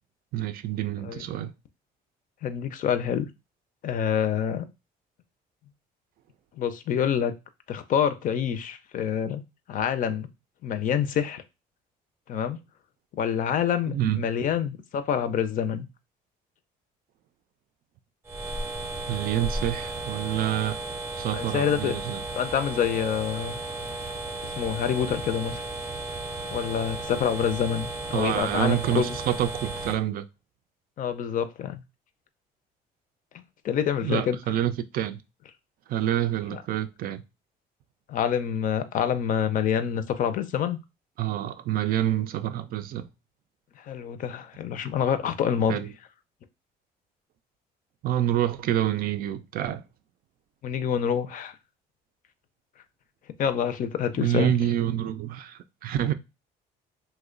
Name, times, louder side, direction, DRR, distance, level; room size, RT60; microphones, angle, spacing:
voice 1, 0.3-1.5 13.9-14.3 19.1-20.8 21.2-22.2 28.1-30.3 34.0-35.2 35.9-37.2 41.2-43.1 45.7-45.9 48.0-49.8 54.2-56.1, right 11 dB, 60° right, 0.4 m, -27 dB
voice 2, 2.4-3.3 3.8-4.6 6.6-7.3 7.7-9.4 9.7-10.3 10.6-11.4 12.3-12.6 13.1-15.8 21.3-22.0 22.3-23.6 24.4-25.6 26.5-29.2 31.0-31.8 33.6-34.4 36.5-36.6 38.1-40.8 43.8-45.8 50.6-51.5 53.4-54.5, left 8 dB, 50° left, 0.5 m, -27 dB
sound 1, 18.2-30.0, right 2 dB, 15° right, 0.6 m, -34 dB
3.0 x 2.2 x 3.7 m
cardioid pair, 110°, 17 cm